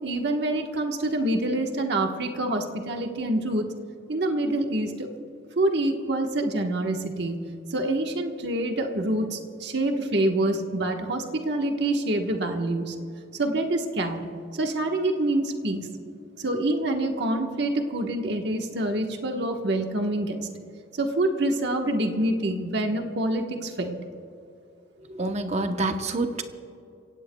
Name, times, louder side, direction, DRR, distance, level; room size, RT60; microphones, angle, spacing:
voice 1, 0.0-3.7 4.1-5.1 5.6-7.4 7.7-13.0 13.3-15.9 16.4-20.5 20.9-24.0, right 1 dB, 60° right, 3 dB, 1.3 m, -26 dB
voice 2, 25.1-26.4, right 2 dB, 35° right, 7 dB, 0.8 m, -27 dB
27.5 x 17.0 x 2.3 m, 2.6 s
head